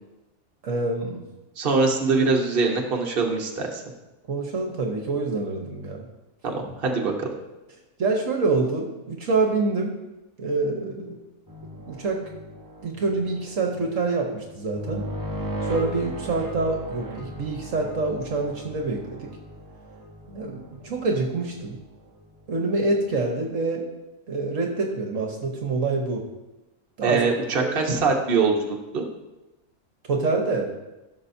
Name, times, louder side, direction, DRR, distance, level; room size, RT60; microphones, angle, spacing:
voice 1, 0.6-1.2 4.3-6.1 8.0-10.0 10.4-11.2 11.9-12.3 12.8-15.1 15.7-19.3 20.3-21.8 22.5-23.9 24.3-26.2 27.0-27.2 27.6-27.7 30.1-30.7, right 3 dB, 60° right, 2 dB, 1.4 m, -26 dB
voice 2, 1.6-3.8 6.4-7.3 27.0-29.0, right 4 dB, 40° right, 0 dB, 1.3 m, -23 dB
sound 1, 11.5-21.7 22.1-22.2 22.9-23.0, equal, 15° right, 1.0 m, -37 dB
15.5 x 6.4 x 2.7 m, 1.0 s
omnidirectional pair, 1.5 m